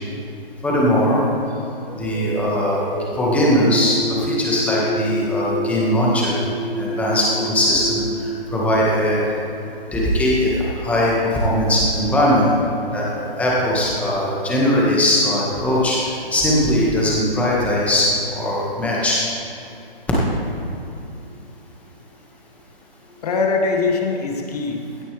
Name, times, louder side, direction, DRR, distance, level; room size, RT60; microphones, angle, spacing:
voice 1, 0.6-1.2 1.9-2.8 3.2-6.4 6.7-9.2 9.9-12.5 12.9-13.0 13.3-19.2, left 1 dB, 5° left, -5 dB, 1.6 m, -19 dB
sound 1, 1.9-9.2, equal, 30° right, 3.1 m, -28 dB
voice 2, 23.2-25.0, left 4 dB, 40° left, 2 dB, 1.8 m, -22 dB
16.5 x 12.0 x 3.3 m, 2.9 s
hypercardioid pair, 155°, 30 cm